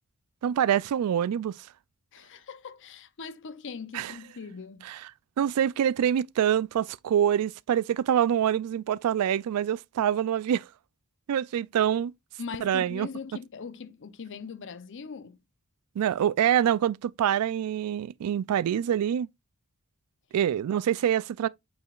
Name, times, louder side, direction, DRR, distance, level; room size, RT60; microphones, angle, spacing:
voice 1, 0.4-1.7 3.9-4.1 4.8-5.0 5.4-10.7 11.3-12.1 12.6-13.1 16.0-19.3 20.3-21.5, right 9 dB, 80° right, 0.3 m, -25 dB
voice 2, 2.1-4.8 12.4-15.4, left 5 dB, 55° left, 0.6 m, -40 dB
8.3 x 4.7 x 2.4 m
head